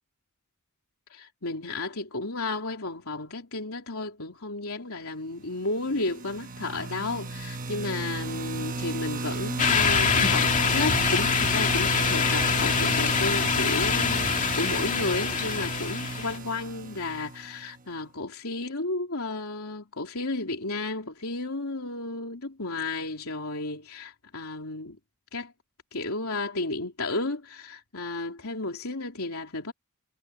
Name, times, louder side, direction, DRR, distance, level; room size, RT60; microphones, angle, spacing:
voice 1, 1.1-25.0 25.3-25.5 25.9-29.7, left 2 dB, 85° left, 3.3 m, -33 dB
sound 1, 5.9-17.7, right 3 dB, 40° right, 1.1 m, -33 dB
sound 2, 9.6-16.4, left 6 dB, 35° left, 2.3 m, -25 dB
head